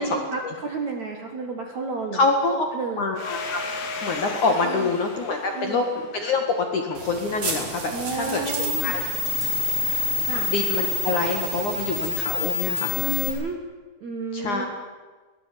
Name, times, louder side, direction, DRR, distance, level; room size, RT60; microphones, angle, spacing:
voice 1, 0.0-2.2 2.7-3.0 4.6-4.9 5.6-5.8 7.9-8.9 10.3-10.5 13.0-13.6 14.0-14.7, right 3 dB, 55° right, 2 dB, 2.1 m, -31 dB
voice 2, 2.1-2.7 3.0-3.6 4.0-9.0 9.8-10.1 10.5-13.0 14.3-14.7, left 3 dB, 55° left, 3 dB, 2.5 m, -26 dB
Domestic sounds home sounds, 3.2-7.6, left 4 dB, 85° left, 5.6 m, -36 dB
sound 1, 7.0-13.3, left 2 dB, 30° right, 4.8 m, -27 dB
23.0 x 19.0 x 8.6 m, 1.3 s
omnidirectional pair, 5.7 m